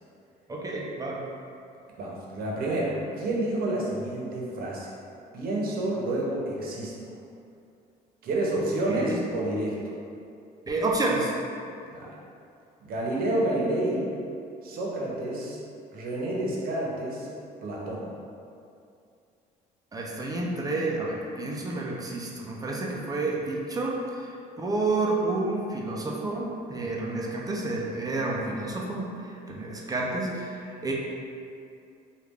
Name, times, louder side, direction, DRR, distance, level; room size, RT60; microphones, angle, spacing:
voice 1, 0.5-1.2 8.9-9.2 10.7-11.3 19.9-30.9, right 2 dB, 20° right, -2 dB, 0.4 m, -30 dB
voice 2, 2.0-4.9 5.3-7.2 8.2-9.8 11.9-12.2 12.8-14.1 14.6-15.6 15.9-17.3 17.6-18.1, right 1 dB, 60° right, -3 dB, 0.8 m, -29 dB
3.1 x 2.4 x 3.4 m, 2.5 s
cardioid pair, 110°, 17 cm